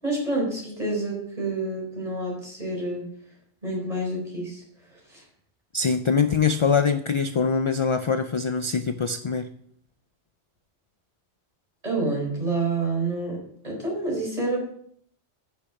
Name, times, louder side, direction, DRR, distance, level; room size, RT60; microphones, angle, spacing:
voice 1, 0.0-3.0 3.6-4.6 4.9-5.2 11.8-13.4 13.6-14.6, right 2 dB, 35° right, -2 dB, 4.6 m, -28 dB
voice 2, 5.7-9.5, left 5 dB, 45° left, 10 dB, 0.4 m, -23 dB
10.0 x 7.1 x 5.8 m, 0.64 s
omnidirectional pair, 1.1 m